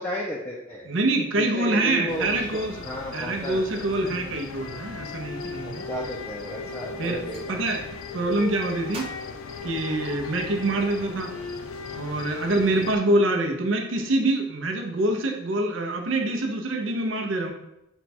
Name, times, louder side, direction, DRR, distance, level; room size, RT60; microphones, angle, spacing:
voice 1, 0.0-0.9 1.3-3.9 5.7-7.6 10.7-10.9, left 1 dB, 10° left, -5 dB, 0.5 m, -34 dB
voice 2, 0.8-2.8 3.1-5.8 6.7-7.2 7.5-7.8 8.1-9.1 9.6-11.3 11.9-17.5, right 2 dB, 70° right, 2 dB, 0.7 m, -25 dB
sound 1, 2.1-13.0, left 4 dB, 85° left, 0.4 m, -37 dB
Gunshot gunfire, 7.0-7.5 8.9-10.4, right 2 dB, 30° right, 0.9 m, -44 dB
4.4 x 2.3 x 4.2 m, 0.85 s
head